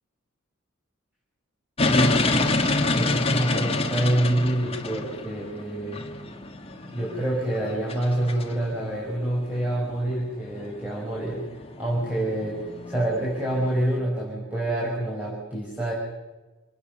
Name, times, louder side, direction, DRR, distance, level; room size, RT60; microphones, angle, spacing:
sound 1, 1.8-14.0, left 2 dB, 30° left, 2.0 m, -28 dB
voice 1, 1.8-2.4 2.9-6.1 6.9-11.5 11.8-15.9, right 1 dB, 10° right, -5 dB, 5.6 m, -27 dB
28.0 x 18.5 x 6.8 m, 1.2 s
head